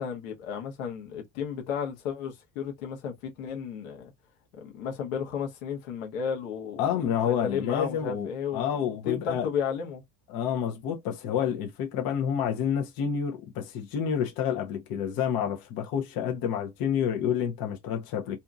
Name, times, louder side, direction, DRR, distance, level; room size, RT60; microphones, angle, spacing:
voice 1, 0.0-4.1 4.6-10.0, left 7 dB, 90° left, 1.1 m, -33 dB
voice 2, 6.8-9.5 10.3-18.4, left 8 dB, 60° left, 0.9 m, -29 dB
2.7 x 2.6 x 2.3 m
supercardioid pair, 100°, 41 cm